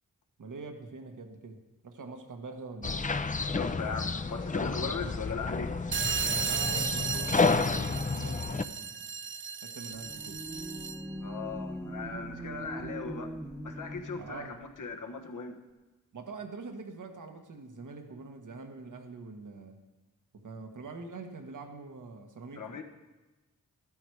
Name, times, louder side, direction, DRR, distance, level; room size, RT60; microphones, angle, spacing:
voice 1, 0.4-3.0 6.3-9.0 9.6-10.5 14.1-14.6 16.1-19.8 20.3-22.7, right 3 dB, 75° right, 5 dB, 1.5 m, -44 dB
sound 1, 2.8-8.6, left 4 dB, 25° left, 0.6 m, -30 dB
voice 2, 3.5-5.7 11.2-13.3 13.6-15.6 22.6-22.8, left 5 dB, 75° left, 4 dB, 1.4 m, -38 dB
sound 2, 5.9-11.1, right 6 dB, 40° right, 0.5 m, -35 dB
sound 3, 9.9-14.6, right 1 dB, 15° right, 1.1 m, -41 dB
13.5 x 12.5 x 4.9 m, 1.1 s
cardioid pair, 55°, 31 cm